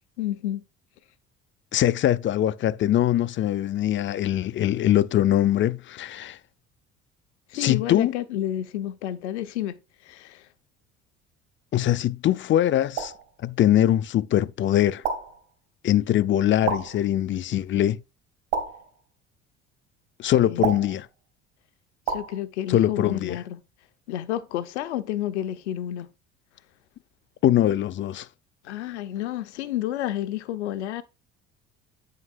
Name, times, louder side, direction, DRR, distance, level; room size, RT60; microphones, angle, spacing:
voice 1, 0.2-0.6 7.5-10.5 16.6-16.7 20.5-20.8 22.1-23.6 24.1-26.1 28.6-31.0, left 12 dB, 75° left, 0.9 m, -30 dB
voice 2, 1.7-6.4 7.5-8.1 11.7-13.1 13.4-15.0 15.8-18.0 20.2-21.1 22.7-23.4 27.4-28.3, left 12 dB, 35° left, 0.5 m, -22 dB
sound 1, 13.0-13.3 15.0-15.4 16.7-17.1 18.5-19.0 20.6-21.0 22.1-22.4, right 6 dB, 70° right, 2.3 m, -29 dB
8.6 x 6.6 x 2.5 m
hypercardioid pair, 60°, 34 cm